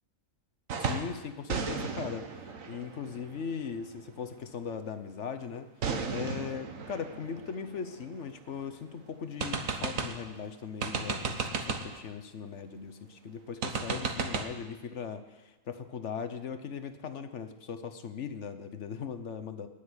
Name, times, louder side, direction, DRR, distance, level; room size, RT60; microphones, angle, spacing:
sound 1, 0.7-1.2 1.5-4.1 5.8-8.5 8.9-9.0 9.4-10.3 10.8-12.0 13.6-14.5, right 5 dB, 85° right, 1.5 m, -35 dB
voice 1, 0.8-19.7, left 6 dB, 65° left, 10 dB, 1.2 m, -39 dB
18.5 x 6.8 x 9.7 m, 1.1 s
omnidirectional pair, 1.4 m